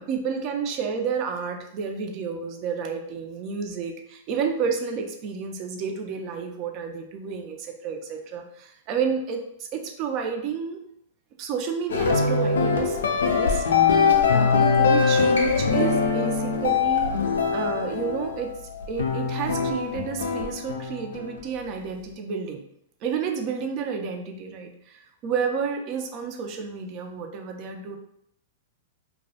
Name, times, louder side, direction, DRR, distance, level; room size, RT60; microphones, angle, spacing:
voice 1, 0.0-7.6 7.8-9.4 9.7-10.8 11.4-13.6 14.3-17.1 17.5-18.5 18.9-22.6 23.0-28.0, right 6 dB, 40° right, 3 dB, 0.4 m, -30 dB
sound 1, 11.9-21.3, left 5 dB, 80° left, 0.4 m, -22 dB
2.2 x 2.0 x 2.7 m, 0.74 s
hypercardioid pair, 115°, 0 cm